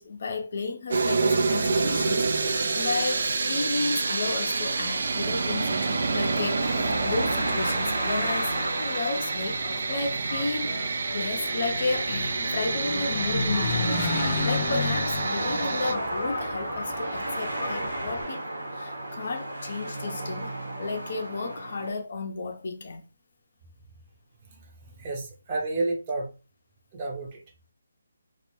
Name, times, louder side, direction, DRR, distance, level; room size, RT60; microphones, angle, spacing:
voice 1, 0.0-14.1 14.4-18.4 18.7-23.0, left 3 dB, 55° left, 0.5 m, -33 dB
sound 1, 0.9-15.9, right 4 dB, 65° right, 0.3 m, -28 dB
sound 2, 4.0-21.9, right 1 dB, 85° right, 0.9 m, -34 dB
Engine, 9.5-18.2, left 3 dB, 35° left, 0.9 m, -33 dB
voice 2, 24.4-26.3 26.9-27.4, right 2 dB, 30° right, 0.7 m, -31 dB
2.2 x 2.1 x 3.0 m
figure-of-eight pair, 160°, 0 cm